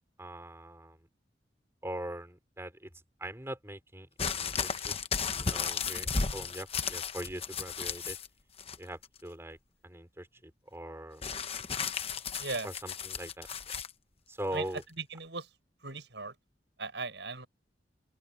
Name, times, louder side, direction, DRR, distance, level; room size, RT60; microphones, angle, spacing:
voice 1, 0.2-1.0 1.8-2.9 3.2-4.9 5.3-8.2 8.8-9.6 9.8-11.3 12.6-13.7 14.3-14.8, right 1 dB, 15° right, 5.1 m, -42 dB
sound 1, 4.2-8.3 8.6-9.2 11.2-13.9 14.8-14.9, left 5 dB, 35° left, 1.0 m, -34 dB
voice 2, 12.4-12.7 14.5-14.6 15.0-15.5 15.8-16.3 16.8-17.5, right 3 dB, 75° right, 7.6 m, -37 dB
open air
head